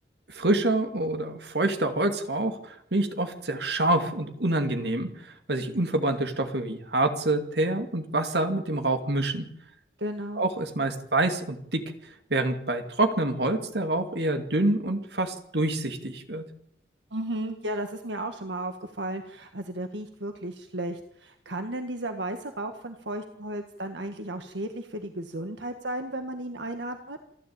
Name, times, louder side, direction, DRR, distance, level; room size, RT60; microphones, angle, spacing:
voice 1, 0.3-9.5 10.4-11.8 12.3-16.4, right 2 dB, 70° right, 7 dB, 2.5 m, -27 dB
voice 2, 10.0-10.4 17.1-27.2, right 1 dB, 85° right, 6 dB, 1.6 m, -34 dB
27.5 x 12.0 x 8.9 m, 0.74 s
head